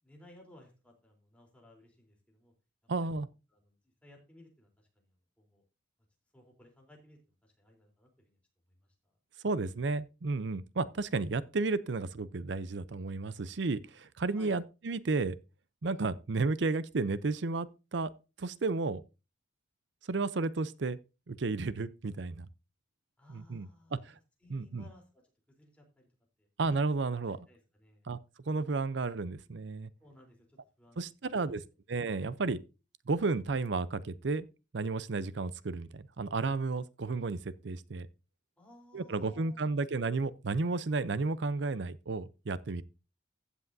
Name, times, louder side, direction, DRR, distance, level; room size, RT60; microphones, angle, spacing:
voice 1, 0.0-2.5 3.0-5.6 6.3-8.4 8.8-9.1 14.3-14.6 23.2-25.2 25.5-26.1 26.4-26.5 27.3-28.1 30.0-31.6 38.6-39.7, left 1 dB, 5° left, 3.5 m, -60 dB
voice 2, 2.9-3.3 9.4-15.4 15.8-18.1 18.4-19.0 20.1-21.0 21.3-22.5 23.3-24.2 24.5-24.8 26.6-27.4 28.1-28.2 28.5-29.9 31.0-31.6 31.9-32.6 33.1-34.5 34.7-38.1 38.9-42.8, right 3 dB, 65° right, 0.6 m, -32 dB
15.0 x 8.3 x 2.6 m
head